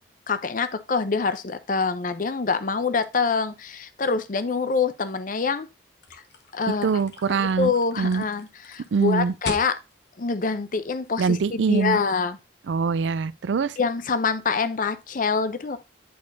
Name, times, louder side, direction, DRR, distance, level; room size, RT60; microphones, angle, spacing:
voice 1, 0.3-5.7 6.5-6.9 7.3-9.8 10.2-12.4 13.8-15.8, left 4 dB, 45° left, 0.6 m, -25 dB
sound 1, 6.0-11.4, left 3 dB, 65° left, 1.2 m, -40 dB
voice 2, 6.8-8.2 8.9-9.3 11.2-12.0 12.7-13.8, right 5 dB, 80° right, 0.4 m, -23 dB
8.5 x 4.3 x 2.6 m
head